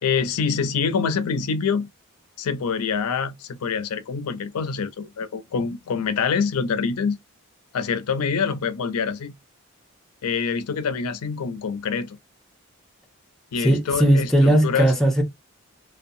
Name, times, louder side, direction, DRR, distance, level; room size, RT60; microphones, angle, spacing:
voice 1, 0.0-1.9 2.4-7.2 7.7-9.3 10.2-12.2 13.5-14.9, left 5 dB, 85° left, 0.4 m, -25 dB
voice 2, 13.6-15.2, right 1 dB, ahead, 0.4 m, -18 dB
2.6 x 2.1 x 2.5 m
head